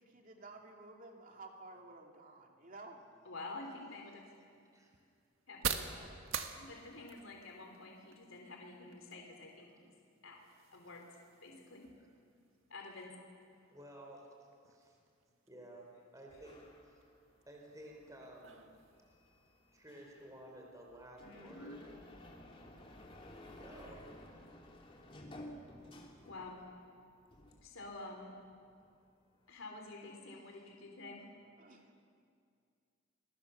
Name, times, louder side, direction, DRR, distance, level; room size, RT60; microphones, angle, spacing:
voice 1, 0.0-3.0 6.0-6.4 31.6-32.0, right 3 dB, 40° right, 1 dB, 2.8 m, -53 dB
voice 2, 3.2-4.2 5.5-5.6 6.5-9.9 10.2-10.4 10.7-11.8 12.7-13.2 21.2-21.7 26.2-26.6 27.6-28.3 29.5-31.2, left 2 dB, 80° left, 1 dB, 3.4 m, -49 dB
sound 1, 3.5-21.1, right 7 dB, 75° right, 1.7 m, -48 dB
voice 3, 13.7-15.0 15.5-16.9 17.5-18.7 19.7-21.8 23.4-24.1 28.7-28.8, right 1 dB, 15° right, 0 dB, 4.0 m, -54 dB
sound 2, 16.3-26.9 27.2-28.5, left 1 dB, 25° left, 3.0 m, -55 dB
30.0 x 22.0 x 7.0 m, 2.3 s
head